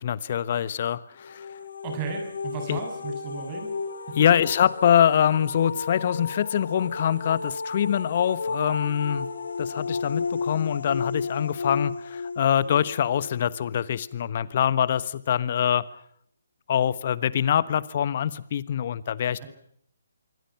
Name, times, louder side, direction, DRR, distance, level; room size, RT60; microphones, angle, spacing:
voice 1, 0.0-1.5 2.7-2.8 4.1-9.3 9.6-15.8 16.7-19.4, left 9 dB, 45° left, 17 dB, 1.2 m, -24 dB
sound 1, 1.2-14.0, left 4 dB, 65° left, 2.1 m, -33 dB
voice 2, 1.8-3.7 4.1-4.2 19.4-19.5, right 6 dB, 30° right, 5 dB, 7.2 m, -35 dB
26.5 x 23.5 x 5.9 m, 0.66 s
figure-of-eight pair, 140°, 0 cm